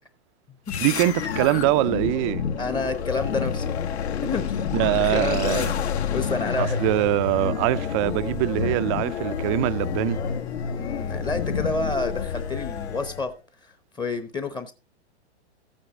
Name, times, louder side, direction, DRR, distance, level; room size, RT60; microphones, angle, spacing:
sound 1, 0.7-13.3, left 7 dB, 70° left, 1.7 m, -29 dB
voice 1, 0.8-2.5 4.7-5.7 6.6-10.2, right 16 dB, 25° right, 0.5 m, -23 dB
voice 2, 2.6-3.8 4.2-4.7 5.0-5.7 6.1-6.9 10.7-13.3 13.6-14.7, left 3 dB, 10° left, 0.9 m, -29 dB
13.5 x 8.8 x 3.7 m
hypercardioid pair, 120°, 34 cm